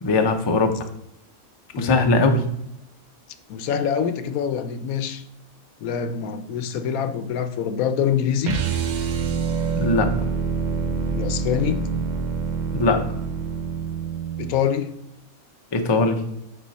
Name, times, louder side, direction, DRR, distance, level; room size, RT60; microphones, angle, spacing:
voice 1, 0.0-0.7 1.8-2.4 9.8-10.1 12.7-13.0 15.7-16.2, left 3 dB, 35° left, 5 dB, 0.4 m, -20 dB
voice 2, 1.7-2.5 3.5-5.2 5.8-8.6 11.1-11.9 14.4-15.0, left 6 dB, 80° left, 10 dB, 1.1 m, -25 dB
sound 1, 8.4-14.5, right 5 dB, 65° right, 0.4 m, -26 dB
6.1 x 5.5 x 4.1 m, 0.80 s
omnidirectional pair, 1.5 m